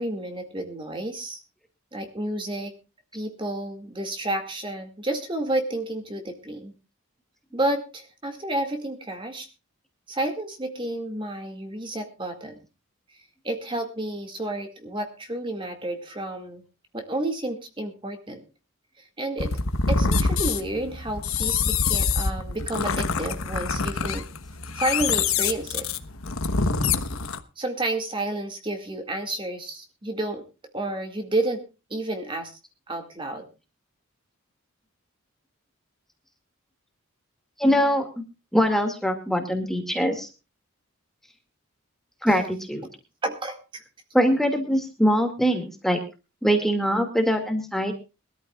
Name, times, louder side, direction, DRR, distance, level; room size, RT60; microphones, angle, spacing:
voice 1, 0.0-1.4 1.9-2.7 3.1-6.7 7.5-9.5 10.1-12.6 13.4-16.6 16.9-18.4 19.0-19.6 19.9-24.2 24.7-25.9 27.6-30.4 30.7-31.6 31.9-32.6 32.9-33.5 43.2-43.6, right 1 dB, 25° right, 5 dB, 2.2 m, -30 dB
sound 1, 19.4-27.4, left 4 dB, 85° left, 1.2 m, -25 dB
voice 2, 37.6-38.2 38.5-40.3 42.2-42.9 44.1-46.0 46.4-47.9, equal, ahead, 5 dB, 2.2 m, -23 dB
23.0 x 13.5 x 2.4 m, 0.30 s
head